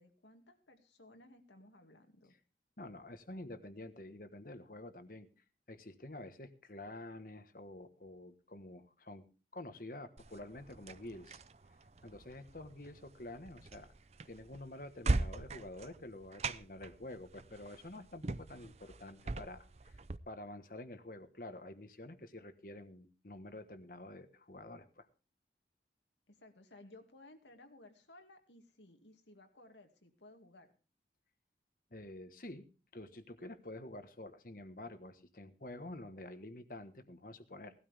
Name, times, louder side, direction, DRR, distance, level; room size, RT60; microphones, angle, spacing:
voice 1, 0.0-2.4 26.3-30.7, left 2 dB, 90° left, 5 dB, 2.3 m, -59 dB
voice 2, 2.8-5.3 5.7-9.3 9.5-11.4 12.0-13.9 14.2-20.0 20.3-25.1 31.9-32.7 32.9-37.7, left 1 dB, 50° left, 10 dB, 1.4 m, -49 dB
sound 1, 10.2-20.2, right 2 dB, 35° right, 0.6 m, -41 dB
18.5 x 13.0 x 3.5 m, 0.34 s
head